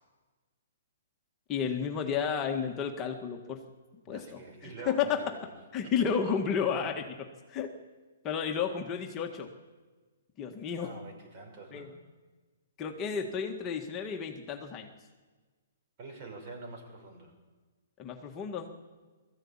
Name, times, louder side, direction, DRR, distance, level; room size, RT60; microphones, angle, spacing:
voice 1, 1.5-3.6 4.1-5.2 5.7-7.7 8.2-9.5 10.4-10.9 11.7-11.9 12.8-14.9 18.0-18.7, left 7 dB, 20° left, 2 dB, 1.7 m, -32 dB
voice 2, 4.1-5.5 5.8-5.9 10.8-12.0 16.0-17.3, right 3 dB, 35° right, 3 dB, 6.1 m, -46 dB
20.5 x 14.5 x 8.8 m, 1.4 s
hypercardioid pair, 155°, 0 cm